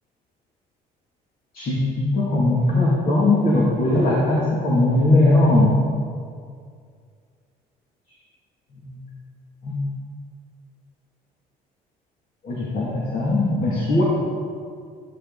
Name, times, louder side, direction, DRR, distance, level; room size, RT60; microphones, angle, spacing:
voice 1, 1.5-5.7 9.6-9.8 12.4-14.0, left 2 dB, 55° left, -5 dB, 2.6 m, -19 dB
14.0 x 11.0 x 4.1 m, 2.2 s
cardioid pair, 110°, 17 cm